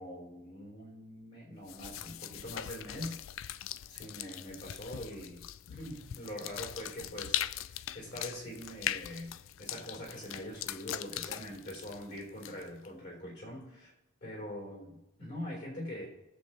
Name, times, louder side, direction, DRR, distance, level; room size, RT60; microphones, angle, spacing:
voice 1, 0.0-3.2 3.9-5.4 5.7-13.9 14.2-16.1, equal, 55° left, -1 dB, 4.2 m, -43 dB
sound 1, 1.7-12.9, left 12 dB, 80° left, 0.4 m, -41 dB
19.0 x 7.4 x 3.3 m, 0.99 s
head